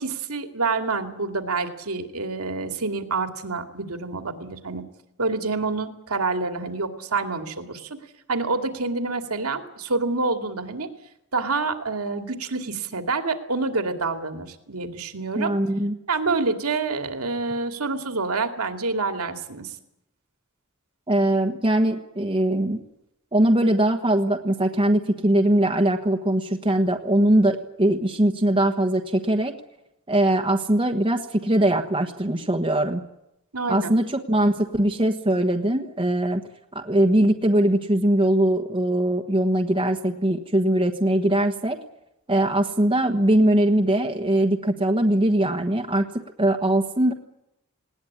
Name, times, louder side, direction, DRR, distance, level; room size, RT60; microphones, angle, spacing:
voice 1, 0.0-4.8 5.2-8.0 8.3-10.9 11.3-15.5 16.1-19.7 33.5-34.0, right 3 dB, 80° right, 6 dB, 2.5 m, -27 dB
voice 2, 15.4-16.0 21.1-22.8 23.3-29.5 30.1-33.0 33.7-36.4 36.7-41.8 42.3-46.1 46.4-47.1, right 1 dB, 25° right, 4 dB, 1.3 m, -21 dB
19.5 x 18.5 x 9.8 m, 0.84 s
head